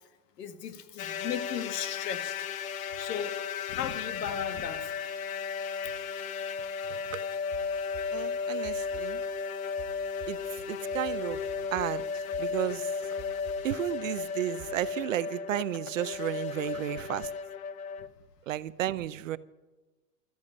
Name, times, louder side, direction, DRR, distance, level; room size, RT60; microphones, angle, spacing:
voice 1, 0.4-2.4 2.9-3.4 3.7-4.9, left 8 dB, 80° left, 1.7 m, -36 dB
sound 1, 1.0-18.1, left 6 dB, 60° left, 1.1 m, -35 dB
sound 2, 7.5-7.6 7.9-8.1 8.6-9.3 9.8-9.9 10.2-10.4 10.9-11.9 12.3-12.7 13.2-13.8 14.6-14.9, right 10 dB, 15° right, 3.3 m, -48 dB
voice 2, 8.1-9.2 10.3-10.4 10.7-11.4 11.7-13.1 13.6-17.3 18.5-19.4, right 13 dB, 55° right, 0.6 m, -33 dB
13.0 x 10.0 x 9.6 m
supercardioid pair, 170°, 48 cm